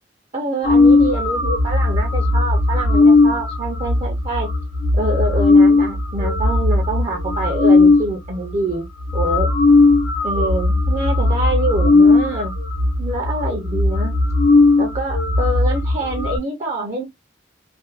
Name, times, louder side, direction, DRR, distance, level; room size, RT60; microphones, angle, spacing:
voice 1, 0.3-4.5 4.9-8.9 9.1-9.5 10.2-12.5 13.0-14.1 14.8-17.0, right 1 dB, 40° right, 0.5 m, -25 dB
sound 1, 0.6-8.1 8.7-8.8 9.0-16.4, left 3 dB, 85° left, 0.8 m, -16 dB
2.5 x 2.2 x 2.3 m
head